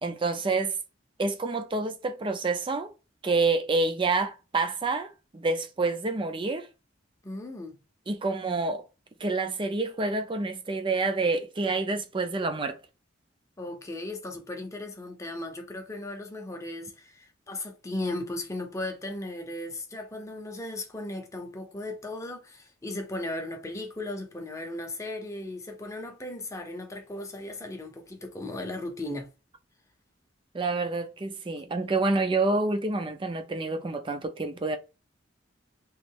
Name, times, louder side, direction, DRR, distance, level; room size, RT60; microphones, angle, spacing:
voice 1, 0.0-0.7 1.2-2.9 3.2-6.7 8.1-8.8 9.2-12.8 30.5-34.8, right 3 dB, 25° right, 0.5 m, -28 dB
voice 2, 7.2-7.8 13.6-29.3, left 2 dB, 15° left, 0.7 m, -36 dB
3.1 x 2.5 x 3.5 m
head